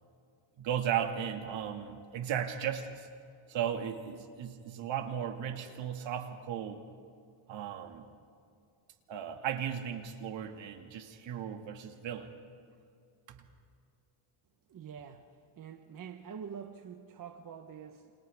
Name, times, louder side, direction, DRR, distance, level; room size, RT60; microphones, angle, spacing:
voice 1, 0.6-3.1 3.5-6.8 7.5-8.1 9.1-12.3 13.3-13.5, right 9 dB, 60° right, 5 dB, 2.3 m, -36 dB
voice 2, 14.7-18.1, right 7 dB, 40° right, 5 dB, 1.2 m, -46 dB
30.0 x 26.5 x 3.6 m, 2.4 s
cardioid pair, 135°, 50 cm